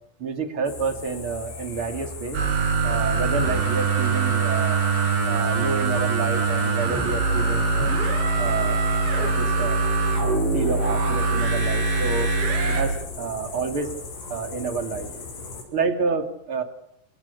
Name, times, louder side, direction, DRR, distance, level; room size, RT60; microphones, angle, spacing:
voice 1, 0.2-2.4 2.8-4.8 5.2-7.9 8.4-8.8 9.1-9.8 10.2-12.3 12.7-13.9 14.3-15.1 15.7-16.6, right 4 dB, 35° right, 8 dB, 2.4 m, -29 dB
sound 1, 0.7-15.6, left 4 dB, 75° left, 9.1 m, -39 dB
sound 2, 2.3-12.8, right 4 dB, 65° right, 9.6 m, -23 dB
30.0 x 28.0 x 6.9 m, 0.77 s
omnidirectional pair, 5.8 m